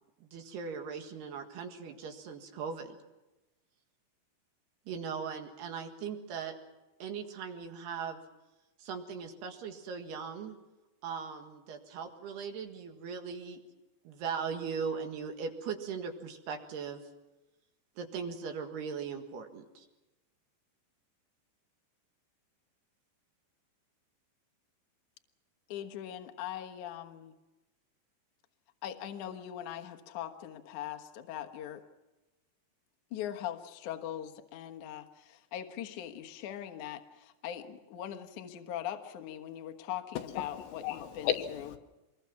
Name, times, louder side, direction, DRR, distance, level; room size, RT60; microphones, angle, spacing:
voice 1, 0.2-3.0 4.9-6.6 7.0-8.2 8.8-10.6 11.0-13.6 14.1-17.0 18.0-19.9, right 6 dB, 65° right, 5 dB, 3.6 m, -39 dB
voice 2, 25.7-27.3 28.8-31.8 33.1-40.8 41.2-41.3, left 10 dB, 60° left, 5 dB, 2.1 m, -41 dB
voice 3, 40.1-41.8, left 11 dB, 80° left, 6 dB, 3.3 m, -35 dB
26.0 x 21.5 x 5.9 m, 1.1 s
omnidirectional pair, 5.2 m